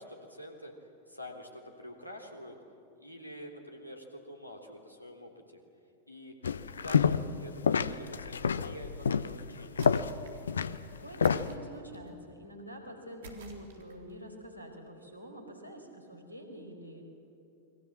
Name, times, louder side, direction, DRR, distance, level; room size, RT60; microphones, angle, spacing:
voice 1, 0.0-2.6 3.0-5.6 6.1-6.3 6.8-9.9, equal, 90° right, 3 dB, 3.3 m, -47 dB
sound 1, 6.4-7.4 7.6-11.5, left 6 dB, 70° left, 0.8 m, -28 dB
sound 2, 9.7-10.5 11.2-12.1 13.2-14.1, right 4 dB, 60° right, 3.9 m, -50 dB
voice 2, 11.0-17.0, equal, 85° left, 4 dB, 4.8 m, -46 dB
29.0 x 22.5 x 7.5 m, 2.7 s
figure-of-eight pair, 90°, 0 cm